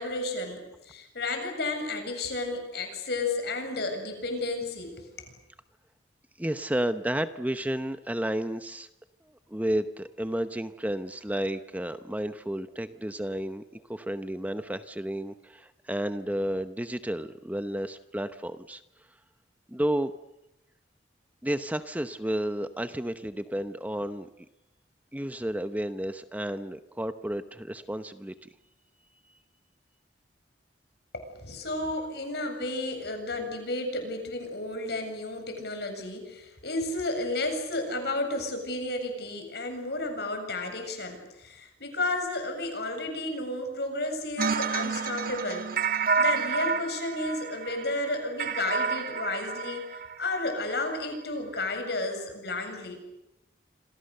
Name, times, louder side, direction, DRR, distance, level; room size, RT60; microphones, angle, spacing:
voice 1, 0.0-5.3 31.1-45.6 45.9-53.0, left 2 dB, 65° left, 5 dB, 7.6 m, -32 dB
voice 2, 6.4-8.9 9.3-18.8 19.7-20.1 21.4-24.3 25.1-28.5, right 1 dB, 10° right, 10 dB, 0.9 m, -32 dB
sound 1, 44.4-50.5, right 5 dB, 55° right, 1.6 m, -29 dB
28.5 x 26.5 x 6.8 m, 0.90 s
head